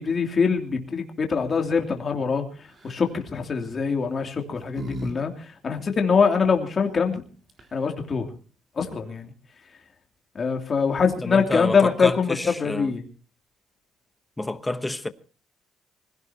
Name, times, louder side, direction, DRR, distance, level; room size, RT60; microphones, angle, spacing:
voice 1, 0.0-7.2 7.7-8.3 8.8-9.3 10.3-13.0, left 5 dB, 30° left, 2.9 m, -24 dB
sound 1, 2.7-3.1 4.1-5.2 5.4-5.5 7.2-7.3 7.5-7.9, equal, 35° right, 3.6 m, -36 dB
voice 2, 11.2-12.9 14.4-15.1, left 2 dB, 10° left, 1.0 m, -28 dB
25.5 x 17.0 x 2.9 m
cardioid pair, 160°, 0 cm